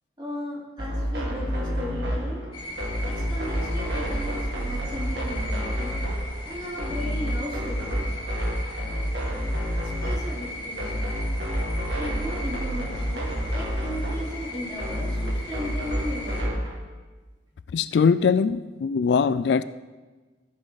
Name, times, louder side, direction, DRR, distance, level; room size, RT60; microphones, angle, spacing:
voice 1, 0.2-2.4 3.1-6.0 6.5-8.1 9.8-11.1 11.9-16.5, equal, 25° right, -6 dB, 3.6 m, -36 dB
sound 1, 0.8-16.7, equal, 75° right, 2.1 m, -29 dB
sound 2, 2.5-16.4, left 1 dB, 25° left, 2.5 m, -38 dB
voice 2, 17.7-19.6, left 5 dB, 65° left, 15 dB, 0.3 m, -21 dB
14.0 x 7.6 x 4.0 m, 1.3 s
head